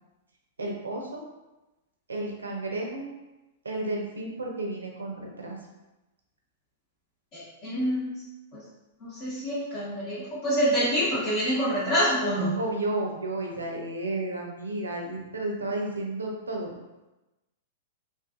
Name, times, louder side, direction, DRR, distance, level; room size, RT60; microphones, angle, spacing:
voice 1, 0.6-1.2 2.1-3.1 3.6-5.6 12.6-16.7, right 2 dB, 85° right, 0 dB, 0.5 m, -32 dB
voice 2, 7.3-8.1 9.2-12.5, equal, 40° left, -10 dB, 0.9 m, -26 dB
2.4 x 2.4 x 2.4 m, 1.0 s
figure-of-eight pair, 105°, 0 cm